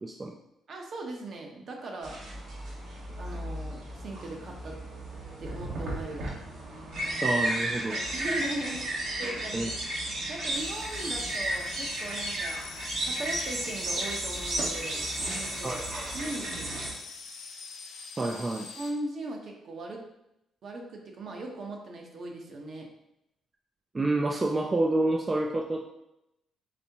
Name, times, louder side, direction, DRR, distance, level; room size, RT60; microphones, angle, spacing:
voice 1, 0.0-0.4 7.2-8.0 9.5-9.7 15.6-16.1 18.2-18.6 23.9-25.8, right 2 dB, 25° right, 1 dB, 0.4 m, -28 dB
voice 2, 0.7-2.2 3.2-4.8 5.4-6.3 7.9-9.7 10.3-15.8 16.1-16.8 18.2-18.3 18.8-20.1 20.6-22.9, right 2 dB, 55° right, 1 dB, 0.9 m, -39 dB
sound 1, 2.0-16.9, right 1 dB, 75° right, 1.3 m, -33 dB
sound 2, 10.5-18.9, left 5 dB, 85° left, 0.6 m, -44 dB
4.1 x 3.4 x 2.9 m, 0.84 s
cardioid pair, 90°, 0 cm